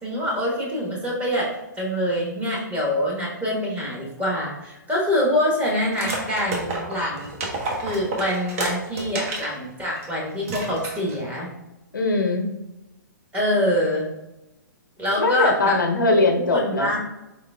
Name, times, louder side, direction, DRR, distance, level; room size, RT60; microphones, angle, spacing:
voice 1, 0.0-1.5 1.8-7.3 7.8-11.5 13.3-14.1 15.0-15.8 16.5-17.0, left 1 dB, 10° right, -4 dB, 1.1 m, -25 dB
sound 1, 5.9-9.5 10.0-10.1 10.4-11.2, right 2 dB, 45° right, 1.1 m, -30 dB
voice 2, 11.9-12.5 15.2-17.0, left 2 dB, 80° left, 4 dB, 0.7 m, -21 dB
4.5 x 3.7 x 2.3 m, 0.95 s
hypercardioid pair, 130°, 11 cm